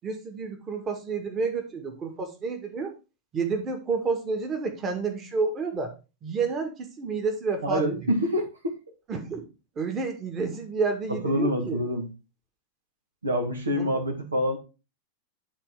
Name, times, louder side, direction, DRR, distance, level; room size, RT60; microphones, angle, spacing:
voice 1, 0.0-2.9 3.3-5.9 6.2-7.9 9.1-9.4 9.8-11.8 13.8-13.9, right 4 dB, 25° right, 5 dB, 2.0 m, -30 dB
voice 2, 7.6-8.8 11.1-12.1 13.2-14.6, equal, 75° right, 3 dB, 1.9 m, -26 dB
11.5 x 4.1 x 4.9 m, 0.30 s
figure-of-eight pair, 90°, 0 cm